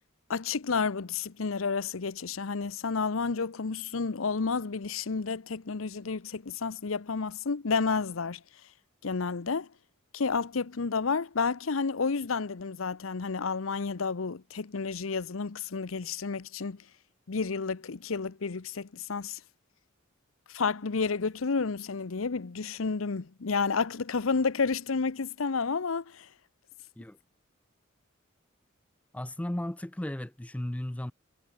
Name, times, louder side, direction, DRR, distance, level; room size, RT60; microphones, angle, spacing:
voice 1, 0.3-8.4 9.0-9.7 10.1-16.8 17.3-19.4 20.5-26.3, left 4 dB, 85° left, 0.8 m, -31 dB
voice 2, 29.1-31.1, left 1 dB, 5° left, 0.4 m, -35 dB
head